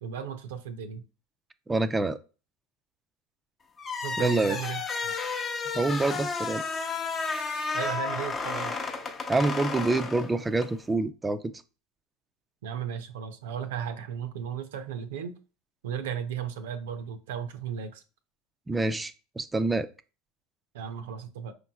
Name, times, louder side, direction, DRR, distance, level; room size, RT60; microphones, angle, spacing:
voice 1, 0.0-1.0 4.0-5.1 7.7-8.7 12.6-15.3 15.8-18.0 20.7-21.5, right 8 dB, 75° right, 9 dB, 0.5 m, -35 dB
voice 2, 1.7-2.2 4.2-4.6 5.7-6.6 9.3-11.5 18.7-19.9, right 2 dB, 15° right, 12 dB, 0.4 m, -26 dB
sound 1, 3.8-10.8, left 4 dB, 30° left, 0.6 m, -32 dB
5.1 x 3.1 x 2.3 m, 0.34 s
hypercardioid pair, 90°, 0 cm